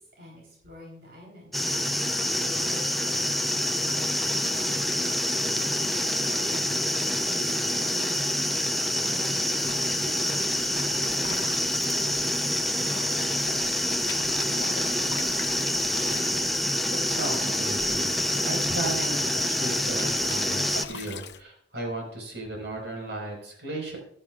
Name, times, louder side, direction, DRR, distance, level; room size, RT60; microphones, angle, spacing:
voice 1, 0.0-1.5 2.4-5.2 5.5-8.2 9.0-12.9, left 1 dB, 65° right, -2 dB, 3.9 m, -47 dB
sound 1, 1.5-20.8, left 1 dB, ahead, 0.6 m, -27 dB
sound 2, 9.6-21.4, left 6 dB, 75° left, 0.7 m, -43 dB
voice 2, 17.1-24.0, right 2 dB, 85° right, 0 dB, 5.1 m, -35 dB
15.0 x 12.0 x 2.5 m, 0.67 s
head